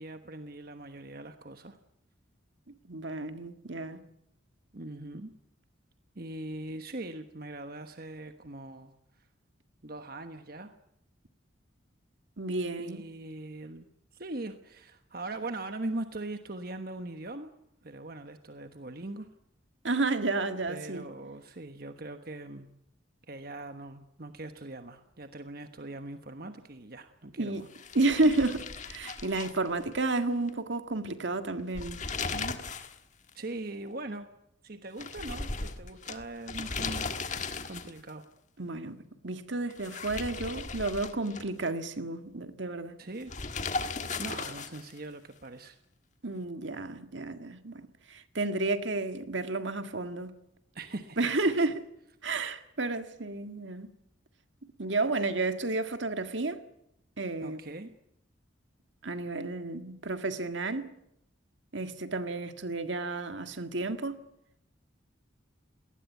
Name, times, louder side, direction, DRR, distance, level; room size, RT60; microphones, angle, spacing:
voice 1, 0.0-1.8 4.7-5.3 6.1-8.9 9.8-10.7 12.8-13.9 14.1-17.5 17.8-19.3 20.7-22.7 23.3-27.7 33.3-34.3 34.6-38.3 43.0-43.3 44.2-45.8 50.7-51.7 57.4-57.9, right 2 dB, 50° right, 1.2 m, -41 dB
voice 2, 2.9-4.0 12.4-13.0 19.8-21.1 27.4-27.6 27.9-32.0 32.3-32.6 38.6-39.0 39.2-43.0 46.2-50.3 51.2-51.8 52.2-53.9 54.8-56.6 57.2-57.6 59.0-60.9 61.7-64.2, right 2 dB, 70° right, 1.7 m, -31 dB
sound 1, 27.7-30.2 30.5-30.6 31.6-33.0 33.3-33.4 35.0-38.1 39.7-41.7 43.3-45.0, left 4 dB, 35° left, 1.6 m, -37 dB
20.0 x 19.0 x 9.3 m
head